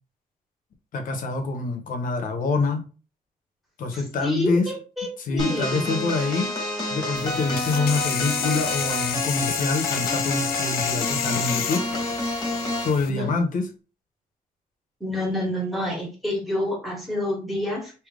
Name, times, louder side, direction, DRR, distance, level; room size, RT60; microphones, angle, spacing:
voice 1, 0.9-2.8 3.8-4.7 5.2-6.5 6.9-11.9 12.8-13.7, left 3 dB, 60° left, 5 dB, 0.9 m, -26 dB
voice 2, 3.9-5.8 13.1-13.3 15.0-17.9, left 1 dB, ahead, -2 dB, 1.7 m, -28 dB
sound 1, 5.4-13.0, left 1 dB, 25° left, 1.4 m, -29 dB
sound 2, 7.2-13.1, left 10 dB, 80° left, 0.4 m, -30 dB
3.3 x 2.9 x 3.7 m, 0.34 s
cardioid pair, 120°, 15 cm